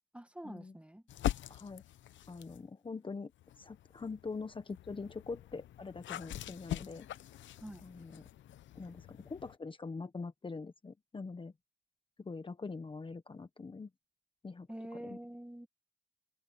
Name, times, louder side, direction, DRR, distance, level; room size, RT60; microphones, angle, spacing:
voice 1, 0.1-1.1 7.6-7.8 14.7-15.7, right 1 dB, 5° right, 2.0 m, -46 dB
sound 1, 1.1-2.7 3.3-9.6, left 12 dB, 70° left, 0.9 m, -43 dB
voice 2, 1.5-1.8 2.3-3.3 3.6-7.1 7.8-8.2 8.7-11.5 12.2-13.9 14.4-14.7 15.0-15.2, left 4 dB, 25° left, 1.3 m, -43 dB
cardioid pair, 90°, 20 cm